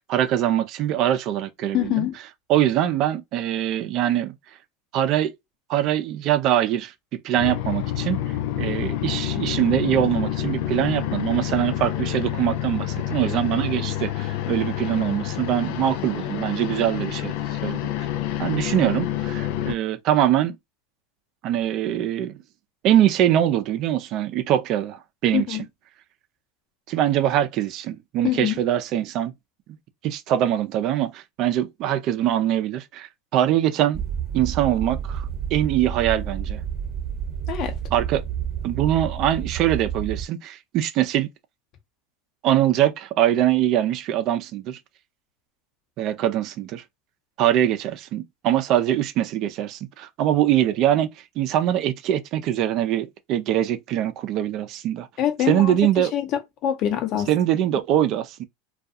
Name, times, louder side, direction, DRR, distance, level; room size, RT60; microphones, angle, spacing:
voice 1, 0.0-2.1 2.5-4.3 4.9-5.3 5.7-6.9 7.2-8.2 8.6-17.8 18.4-20.6 21.4-22.3 22.8-25.6 26.9-29.3 30.0-34.0 34.3-35.2 35.5-36.6 37.9-38.2 38.6-41.3 42.4-44.8 46.0-46.8 47.4-51.1 51.4-55.1 55.5-56.1 57.3-58.4, right 11 dB, 50° right, 0.5 m, -23 dB
voice 2, 1.7-2.2 25.3-25.6 28.2-28.6 37.5-37.7 55.2-55.8 56.1-57.3, left 11 dB, 50° left, 0.9 m, -24 dB
sound 1, 7.4-19.7, left 12 dB, 65° left, 0.4 m, -28 dB
sound 2, 33.9-40.2, right 8 dB, 30° right, 1.1 m, -30 dB
2.3 x 2.3 x 2.6 m
hypercardioid pair, 95°, 0 cm